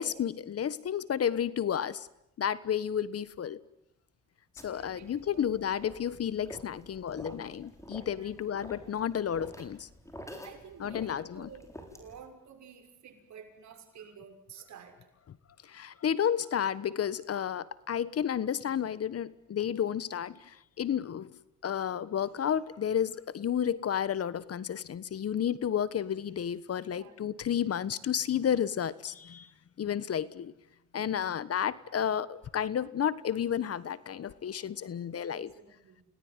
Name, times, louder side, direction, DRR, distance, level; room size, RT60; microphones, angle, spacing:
voice 1, 0.0-2.1 2.4-3.6 4.6-9.9 10.8-11.5 15.6-29.5 29.8-30.5 30.9-35.5, left 9 dB, 50° left, 18 dB, 1.3 m, -31 dB
sound 1, 4.6-12.3, equal, 10° left, 6.6 m, -49 dB
voice 2, 4.6-5.7 8.1-8.4 10.4-15.0 26.8-27.1 31.0-31.4 35.3-36.0, right 7 dB, 65° right, 5 dB, 6.3 m, -52 dB
30.0 x 19.0 x 9.8 m, 0.84 s
cardioid pair, 90°, 30 cm